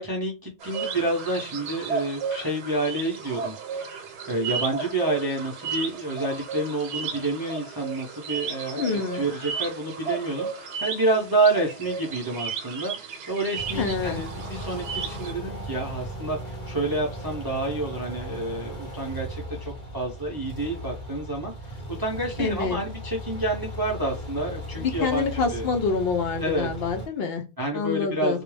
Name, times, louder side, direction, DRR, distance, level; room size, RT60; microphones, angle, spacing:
voice 1, 0.0-4.0 4.3-25.7 26.4-26.7 27.6-28.4, right 2 dB, 30° right, -1 dB, 0.4 m, -29 dB
sound 1, 0.6-15.3, right 6 dB, 85° right, 0.9 m, -34 dB
voice 2, 8.8-9.2 13.8-14.2 22.4-22.8 24.8-27.4 27.7-28.4, left 5 dB, 65° left, 4 dB, 0.7 m, -26 dB
sound 2, 13.5-27.1, equal, 40° left, 1.0 m, -37 dB
2.3 x 2.1 x 3.1 m, 0.26 s
omnidirectional pair, 1.1 m